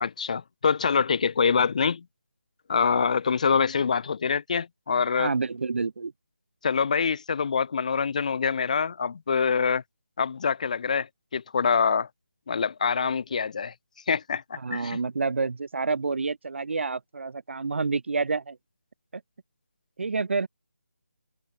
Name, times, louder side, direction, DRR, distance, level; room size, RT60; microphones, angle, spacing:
voice 1, 0.0-2.0 2.7-5.3 6.6-9.8 10.2-11.1 11.3-12.1 12.5-13.7 14.1-15.0, left 6 dB, 30° left, 0.8 m, -25 dB
voice 2, 5.2-6.1 14.6-18.6 20.0-20.5, right 4 dB, 50° right, 1.2 m, -28 dB
figure-of-eight pair, 170°, 8 cm